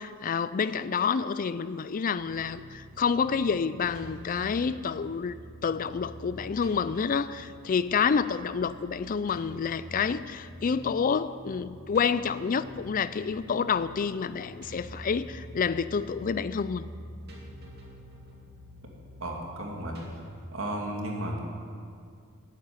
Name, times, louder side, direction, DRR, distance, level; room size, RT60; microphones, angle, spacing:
voice 1, 0.0-16.8, left 6 dB, 40° left, 15 dB, 0.4 m, -28 dB
sound 1, 2.2-20.3, equal, 50° right, 2.4 m, -46 dB
voice 2, 19.2-20.0 20.5-21.4, right 1 dB, 65° right, 0 dB, 2.6 m, -33 dB
12.5 x 9.0 x 9.5 m, 2.2 s
head